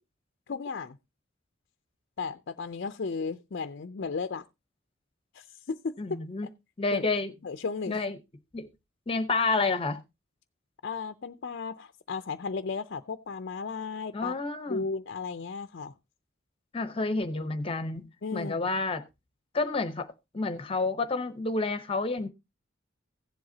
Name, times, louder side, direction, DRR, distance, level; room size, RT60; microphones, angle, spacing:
voice 1, 0.5-1.0 2.2-4.4 5.3-5.9 6.9-7.0 7.4-8.0 10.8-14.3 14.7-15.9 18.2-18.5, left 4 dB, 55° left, 0.5 m, -35 dB
voice 2, 6.0-6.5 6.8-7.3 7.9-8.2 8.5-8.7 9.1-10.0 14.1-14.9 16.7-19.0 19.5-20.1 20.3-22.3, left 3 dB, 30° left, 0.8 m, -29 dB
16.0 x 7.8 x 2.7 m
head